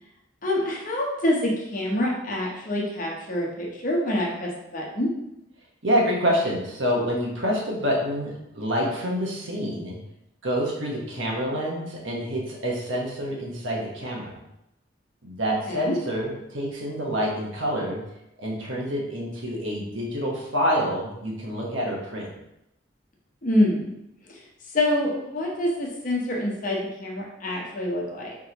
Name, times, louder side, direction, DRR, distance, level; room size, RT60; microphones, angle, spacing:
voice 1, 0.4-5.1 15.7-16.0 23.4-23.9 24.3-24.4 24.7-28.4, left 1 dB, 40° left, -2 dB, 0.9 m, -26 dB
voice 2, 5.8-10.0 10.4-14.4 15.2-18.0 18.4-22.3, equal, 75° right, -3 dB, 1.3 m, -27 dB
4.7 x 3.7 x 2.9 m, 0.85 s
head